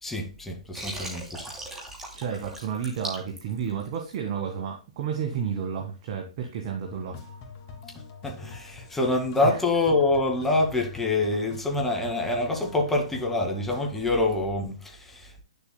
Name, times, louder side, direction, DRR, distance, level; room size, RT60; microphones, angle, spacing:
voice 1, 0.0-1.4 8.2-15.4, left 2 dB, 5° left, 1.9 m, -26 dB
Water, 0.7-4.2, right 1 dB, 10° right, 2.8 m, -38 dB
voice 2, 2.1-7.2 9.4-9.6, right 7 dB, 45° right, 1.7 m, -31 dB
sound 1, 6.9-14.1, left 5 dB, 35° left, 2.2 m, -44 dB
9.7 x 7.1 x 2.2 m
hypercardioid pair, 130°, 4 cm